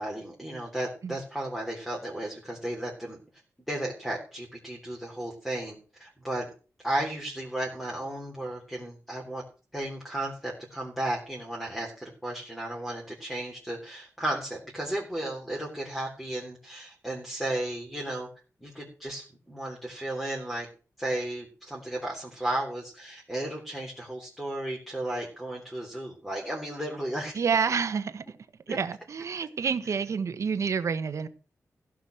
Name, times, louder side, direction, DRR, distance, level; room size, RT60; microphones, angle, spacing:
voice 1, 0.0-3.2 3.7-6.5 6.8-9.4 9.7-18.3 18.6-20.7 21.0-27.4 28.7-28.8, right 1 dB, 5° left, -2 dB, 3.6 m, -34 dB
voice 2, 27.3-28.4 28.7-31.3, right 6 dB, 60° right, 10 dB, 1.3 m, -28 dB
16.0 x 6.2 x 7.8 m, 0.37 s
wide cardioid pair, 165°, 6 cm